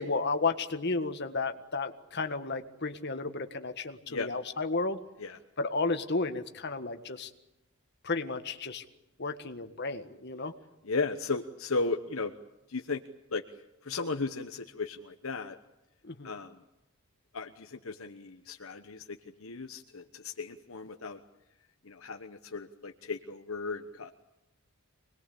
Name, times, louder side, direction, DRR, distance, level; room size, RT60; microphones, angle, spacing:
voice 1, 0.0-5.0 5.6-7.3 8.0-8.8 9.2-10.5 16.0-16.3, left 3 dB, 50° left, 7 dB, 1.7 m, -33 dB
voice 2, 10.8-12.3 12.7-13.0 13.3-15.6 16.2-16.6 17.3-21.2 21.8-24.1, left 4 dB, 70° left, 6 dB, 1.1 m, -35 dB
25.5 x 20.5 x 8.5 m, 0.92 s
head